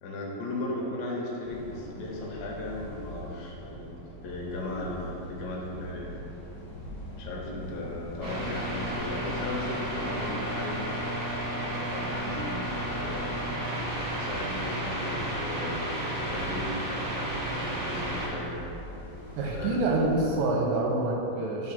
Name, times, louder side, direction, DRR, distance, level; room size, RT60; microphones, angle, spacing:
voice 1, 0.0-6.1 7.2-10.8 11.6-13.5 14.1-17.1 17.5-18.6 19.5-19.8, left 2 dB, 75° left, -2 dB, 2.5 m, -36 dB
sound 1, 1.4-20.5, equal, 55° left, 1.2 m, -43 dB
sound 2, 8.2-18.3, right 1 dB, 55° right, 1.9 m, -32 dB
voice 2, 19.4-21.7, right 2 dB, 80° right, -1 dB, 2.2 m, -27 dB
4.8 x 4.6 x 5.7 m, 2.9 s
omnidirectional pair, 4.3 m